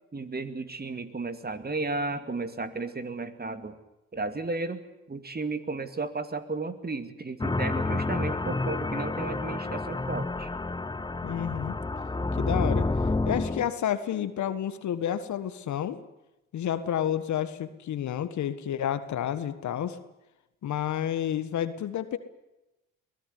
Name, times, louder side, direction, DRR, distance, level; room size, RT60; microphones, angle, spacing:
voice 1, 0.1-3.7 4.1-4.8 5.1-10.5, right 3 dB, 30° right, 10 dB, 2.4 m, -34 dB
sound 1, 7.4-13.7, left 3 dB, 15° left, 0.9 m, -29 dB
voice 2, 11.2-11.8 12.4-12.9 13.2-16.0 16.5-20.0 20.6-22.2, left 10 dB, 70° left, 12 dB, 1.6 m, -30 dB
23.5 x 17.0 x 9.6 m, 0.94 s
supercardioid pair, 50°, 30 cm